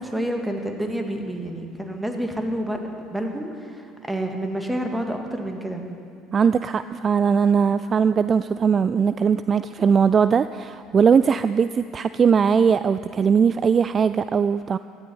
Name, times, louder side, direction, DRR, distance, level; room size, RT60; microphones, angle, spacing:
voice 1, 0.0-2.8 3.1-5.8, right 1 dB, 10° right, 3 dB, 2.0 m, -28 dB
voice 2, 6.3-14.8, right 6 dB, 40° right, 13 dB, 0.3 m, -20 dB
16.0 x 12.0 x 5.6 m, 2.4 s
hypercardioid pair, 65°, 0 cm